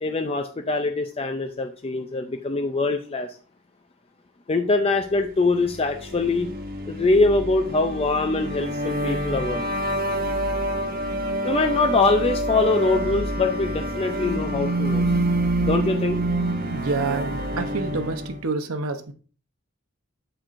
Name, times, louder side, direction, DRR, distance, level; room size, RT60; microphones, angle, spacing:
voice 1, 0.0-3.3 4.5-6.5 6.9-9.6 11.4-15.0 15.6-16.2, left 3 dB, 25° left, 0.4 m, -23 dB
sound 1, 5.4-18.4, right 1 dB, 45° right, 0.9 m, -27 dB
voice 2, 16.7-19.1, right 3 dB, 80° right, 0.9 m, -28 dB
12.0 x 4.4 x 2.5 m
head